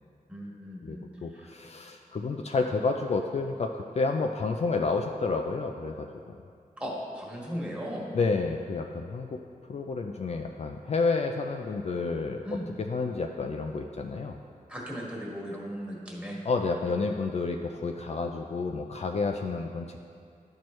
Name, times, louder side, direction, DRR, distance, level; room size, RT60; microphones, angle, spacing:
voice 1, 0.3-1.0 1.3-1.5 6.8-8.1 12.4-12.7 14.7-16.4, equal, 10° right, -4 dB, 1.6 m, -37 dB
voice 2, 0.8-6.4 8.1-9.4 9.7-12.4 12.8-14.4 16.4-20.0, left 4 dB, 45° left, 3 dB, 0.4 m, -30 dB
11.5 x 4.5 x 3.1 m, 2.4 s
wide cardioid pair, 90°, 15 cm